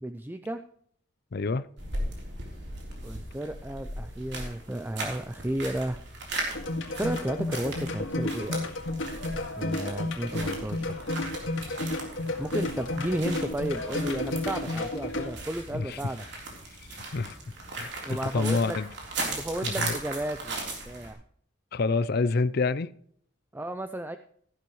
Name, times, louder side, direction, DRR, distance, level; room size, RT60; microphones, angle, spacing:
voice 1, 0.0-0.6 3.0-6.0 6.9-8.6 9.6-11.1 12.4-16.2 18.0-18.8 19.3-21.2 23.5-24.2, right 1 dB, 10° right, 0.4 m, -33 dB
voice 2, 1.3-1.7 15.7-16.0 16.9-17.4 17.7-18.9 19.6-20.0 21.7-22.9, left 4 dB, 50° left, 0.5 m, -28 dB
sound 1, 1.8-21.1, right 2 dB, 60° right, 3.6 m, -38 dB
sound 2, 6.5-15.3, left 2 dB, 70° left, 1.9 m, -32 dB
14.0 x 11.5 x 3.1 m
head